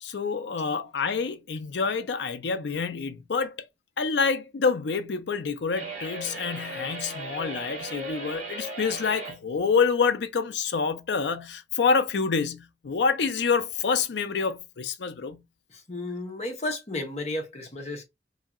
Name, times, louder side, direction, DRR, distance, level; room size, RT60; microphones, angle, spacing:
voice 1, 0.0-3.5 4.0-15.4, left 5 dB, 75° left, 0.5 m, -27 dB
sound 1, 5.8-9.4, right 2 dB, 35° right, 1.6 m, -37 dB
voice 2, 15.7-18.0, left 2 dB, 40° left, 0.9 m, -33 dB
2.8 x 2.7 x 2.4 m
head